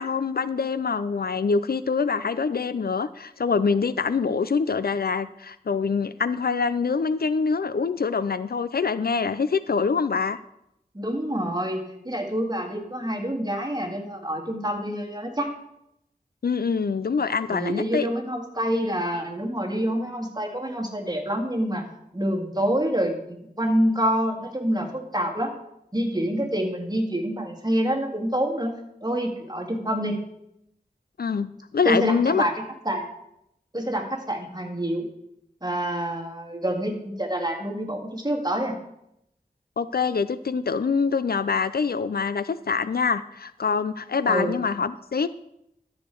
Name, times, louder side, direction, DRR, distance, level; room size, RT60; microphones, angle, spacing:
voice 1, 0.0-10.4 16.4-18.1 31.2-32.5 39.8-45.3, left 5 dB, 75° left, 14 dB, 0.4 m, -25 dB
voice 2, 10.9-15.5 17.5-21.8 22.1-25.5 25.9-28.7 29.0-30.2 31.8-33.1 33.7-35.1 35.6-38.8 44.3-44.6, equal, 25° right, 1 dB, 2.0 m, -27 dB
13.0 x 6.6 x 4.5 m, 0.80 s
wide cardioid pair, 45°, 16 cm